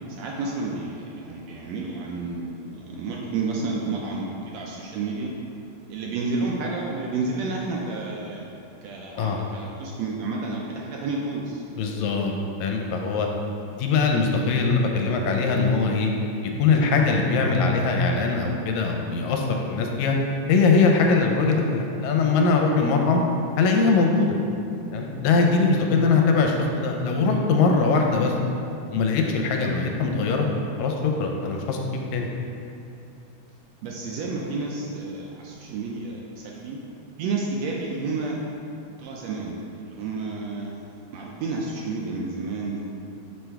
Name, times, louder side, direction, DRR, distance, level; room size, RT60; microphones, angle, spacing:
voice 1, 0.1-5.3 5.9-8.4 8.8-11.6 33.8-36.8 37.2-38.4 39.0-40.7 41.1-42.8, right 3 dB, 80° right, -2 dB, 1.6 m, -30 dB
voice 2, 11.8-12.3 12.6-13.3 13.8-16.1 16.6-20.2 20.5-23.2 23.6-24.4 24.9-28.3 28.9-30.5 30.8-31.8 32.1-32.3, left 4 dB, 80° left, 2 dB, 1.9 m, -21 dB
6.2 x 3.3 x 4.5 m, 2.7 s
omnidirectional pair, 3.4 m